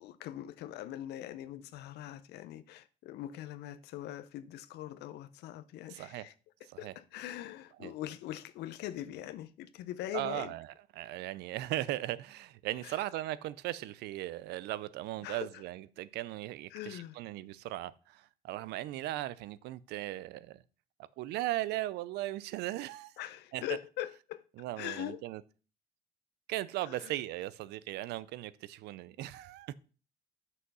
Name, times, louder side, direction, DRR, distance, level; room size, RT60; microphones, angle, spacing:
voice 1, 0.0-6.3 6.8-10.5 12.8-13.0 15.2-15.6 16.7-17.2 23.2-24.4 24.8-25.2 26.8-27.1, left 13 dB, 80° left, 0.6 m, -42 dB
voice 2, 5.9-6.3 6.8-6.9 7.8-7.9 10.1-10.7 11.0-20.6 21.2-23.1 23.5-23.6 24.6-25.4 26.5-29.7, right 15 dB, 80° right, 0.5 m, -38 dB
6.3 x 5.6 x 5.4 m
cardioid pair, 110°, 17 cm